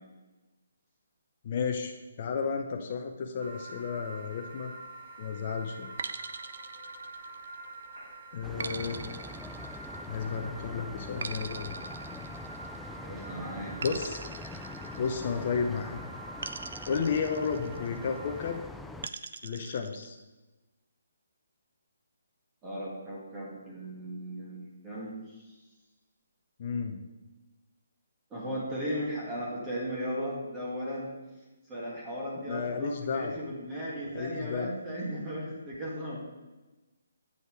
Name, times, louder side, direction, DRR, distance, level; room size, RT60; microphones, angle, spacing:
voice 1, 1.4-4.7 5.2-5.9 8.3-9.0 10.1-11.7 13.8-14.2 14.9-16.0 16.9-18.6 19.4-20.2 26.6-27.0 32.5-33.4 34.1-34.8, left 5 dB, 40° left, 3 dB, 0.7 m, -32 dB
sound 1, 3.4-18.6, right 2 dB, 45° right, 2.7 m, -46 dB
sound 2, 6.0-7.7 8.6-10.3 11.2-12.9 13.8-15.6 16.4-18.0 19.0-20.1, right 5 dB, 60° right, 0.5 m, -41 dB
sound 3, 8.4-19.1, left 2 dB, 5° left, 0.3 m, -44 dB
voice 2, 13.0-13.8 22.6-25.4 28.3-31.1 31.7-36.2, equal, 15° right, -6 dB, 2.0 m, -36 dB
8.0 x 5.3 x 4.7 m, 1.1 s
figure-of-eight pair, 140°, 0 cm